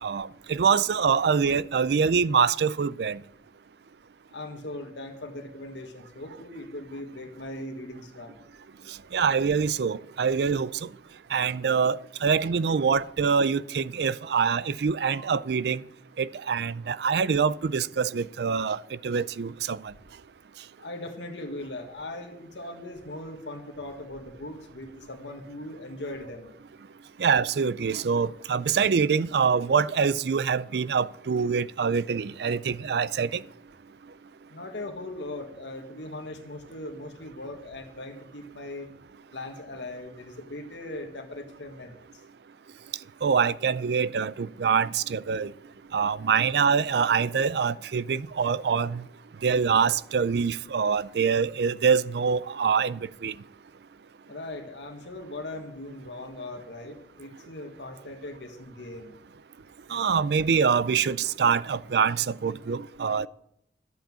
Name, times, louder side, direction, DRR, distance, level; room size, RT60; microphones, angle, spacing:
voice 1, 0.0-3.2 9.1-10.7 11.3-15.8 16.2-19.8 27.2-33.4 43.2-45.5 45.9-49.0 49.4-53.3 59.9-63.3, right 6 dB, 65° right, 0.4 m, -25 dB
voice 2, 4.3-8.4 20.8-26.5 34.5-38.9 39.3-42.0 54.3-59.1, left 2 dB, 90° left, 1.6 m, -39 dB
11.5 x 7.7 x 7.5 m
head